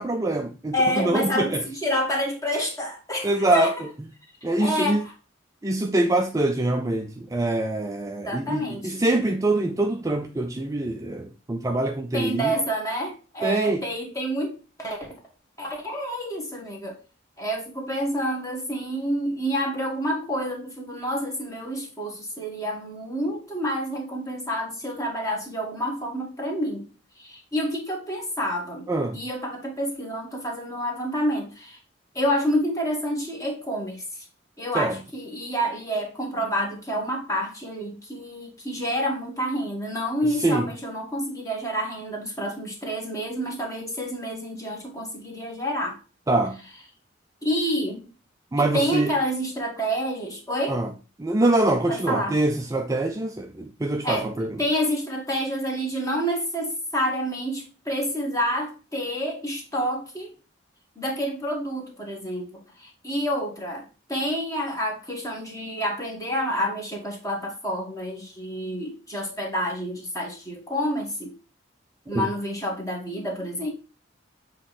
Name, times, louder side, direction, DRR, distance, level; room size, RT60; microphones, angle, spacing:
voice 1, 0.0-1.6 3.2-3.7 4.4-5.0 5.6-12.5 13.4-13.8 28.9-29.2 34.7-35.0 40.4-40.7 46.3-46.6 48.5-49.2 50.7-50.9 51.2-54.6 72.1-72.3, right 2 dB, 15° right, 0.4 m, -24 dB
voice 2, 0.7-3.7 4.6-5.1 8.2-9.2 12.1-15.1 15.6-17.0 17.4-26.9 27.2-28.9 29.1-31.8 32.2-34.3 34.6-46.0 47.4-48.0 48.6-50.8 51.9-52.4 54.0-54.3 54.6-60.3 61.0-71.3 72.1-73.7, equal, 15° left, 1.8 m, -28 dB
7.4 x 3.1 x 4.1 m
head